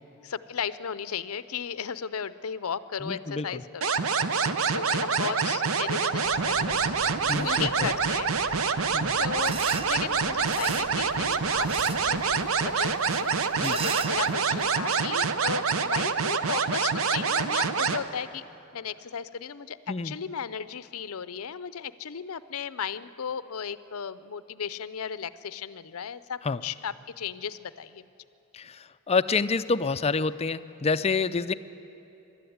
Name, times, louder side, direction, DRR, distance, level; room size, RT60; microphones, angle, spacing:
voice 1, 0.2-3.9 4.7-8.3 8.7-8.9 9.2-13.3 13.7-18.4 18.7-19.8 20.0-28.1, left 7 dB, 75° left, 15 dB, 0.6 m, -35 dB
voice 2, 3.0-3.6 7.3-7.9 8.9-9.1 13.6-13.8 19.9-20.1 26.4-26.6 28.5-31.5, left 4 dB, 30° left, 14 dB, 0.4 m, -28 dB
sound 1, 3.8-18.0, right 5 dB, 65° right, 0.8 m, -26 dB
sound 2, 6.2-11.8, right 1 dB, 40° right, 1.8 m, -46 dB
sound 3, 9.4-14.7, right 6 dB, 25° right, 0.4 m, -39 dB
23.0 x 12.5 x 9.4 m, 3.0 s
head